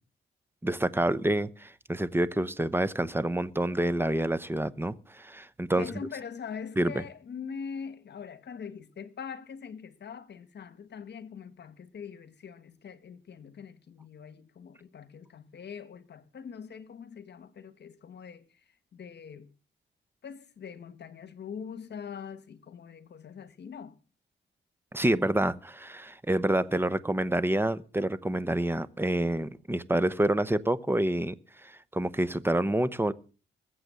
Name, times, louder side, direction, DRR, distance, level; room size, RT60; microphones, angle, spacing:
voice 1, 0.6-5.9 6.8-7.0 24.9-33.1, right 1 dB, 10° right, 0.9 m, -28 dB
voice 2, 5.7-18.6 18.9-19.5 20.2-23.9, left 6 dB, 60° left, 1.4 m, -43 dB
20.5 x 8.0 x 6.9 m
cardioid pair, 110°, 20 cm